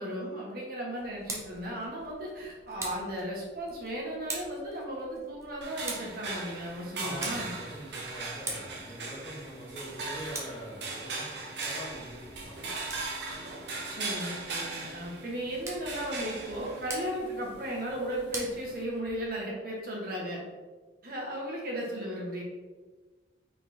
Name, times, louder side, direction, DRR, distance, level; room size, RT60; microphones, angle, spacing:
voice 1, 0.0-7.5 13.9-20.4 21.0-22.4, right 1 dB, 50° right, -3 dB, 1.1 m, -36 dB
Tick, 1.0-19.4, right 2 dB, 15° right, 0.6 m, -45 dB
sound 1, 5.6-18.8, right 3 dB, 70° right, 0.8 m, -39 dB
voice 2, 7.0-12.6, equal, 25° left, -6 dB, 1.0 m, -43 dB
4.6 x 3.9 x 2.7 m, 1.3 s
head